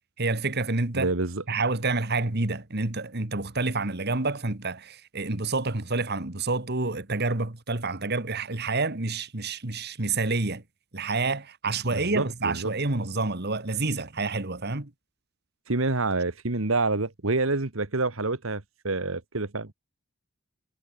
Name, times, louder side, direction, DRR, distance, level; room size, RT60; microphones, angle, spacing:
voice 1, 0.2-1.1 1.5-10.6 10.9-14.9, right 3 dB, 50° right, 2.0 m, -28 dB
voice 2, 0.9-1.4 11.9-12.7 15.7-19.7, right 3 dB, 70° right, 1.7 m, -27 dB
head